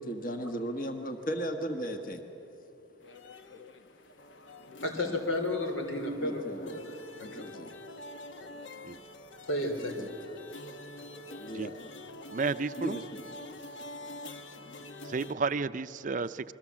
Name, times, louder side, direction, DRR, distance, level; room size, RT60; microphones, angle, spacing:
voice 1, 0.1-2.2 6.2-6.8 7.2-7.7 10.0-10.1 11.3-11.9 12.8-13.2, equal, 45° left, 6 dB, 1.4 m, -36 dB
sound 1, 3.0-15.3, left 1 dB, 70° left, 1.1 m, -46 dB
voice 2, 4.8-7.5 8.4-8.5 9.5-10.0, left 1 dB, 90° left, 5 dB, 3.6 m, -33 dB
voice 3, 12.3-13.0 15.1-16.5, right 4 dB, 40° right, 13 dB, 0.5 m, -32 dB
27.5 x 22.0 x 7.4 m, 2.7 s
head